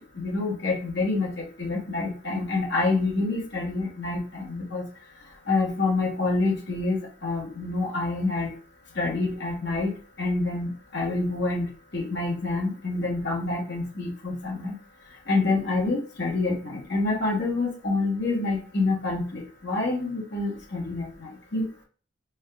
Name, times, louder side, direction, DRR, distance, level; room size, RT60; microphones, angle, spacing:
voice 1, 0.2-4.9 5.5-8.5 9.0-9.9 10.2-14.7 15.3-21.8, left 3 dB, 65° left, -3 dB, 1.1 m, -27 dB
3.4 x 2.3 x 3.4 m, 0.38 s
head